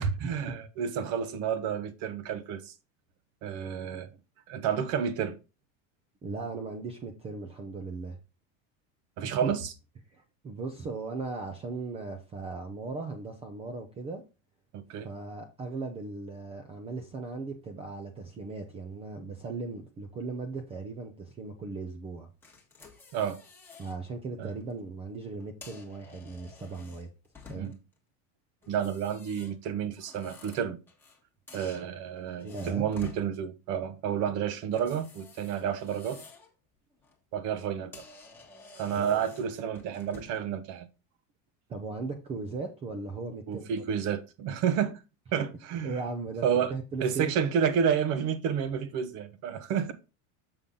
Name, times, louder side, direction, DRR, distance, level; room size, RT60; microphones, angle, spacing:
voice 1, 0.0-2.7 3.4-4.1 4.5-5.3 9.2-9.7 14.7-15.1 23.1-23.4 24.4-24.5 27.6-27.7 28.7-30.8 31.5-36.2 37.3-38.0 38.8-40.9 43.5-45.0 45.3-46.0 46.4-46.7 47.0-49.9, right 8 dB, 40° right, 1.0 m, -30 dB
voice 2, 6.2-8.2 9.2-9.5 10.1-14.2 15.0-22.3 23.8-27.1 27.5-27.7 32.4-32.9 38.9-39.2 41.7-43.8 45.8-47.3, right 3 dB, 15° right, 0.5 m, -38 dB
sound 1, 22.4-24.0 24.4-24.6 25.4-27.9 28.6-31.2 31.5-33.3 34.7-36.5 36.9-37.2 37.6-37.7 37.9-40.5, left 4 dB, 5° left, 1.2 m, -51 dB
7.0 x 5.6 x 3.7 m
supercardioid pair, 170°, 38 cm